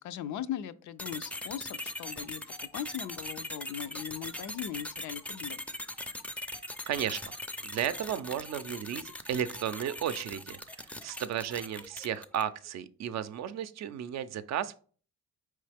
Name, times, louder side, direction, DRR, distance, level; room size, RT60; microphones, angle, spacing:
voice 1, 0.0-5.6, left 10 dB, 70° left, 13 dB, 0.5 m, -39 dB
sound 1, 1.0-12.6, left 1 dB, 5° left, 0.4 m, -41 dB
voice 2, 6.9-7.3 7.6-14.8, right 9 dB, 60° right, 13 dB, 0.5 m, -34 dB
4.7 x 3.2 x 3.4 m, 0.42 s
cardioid pair, 90°, 30 cm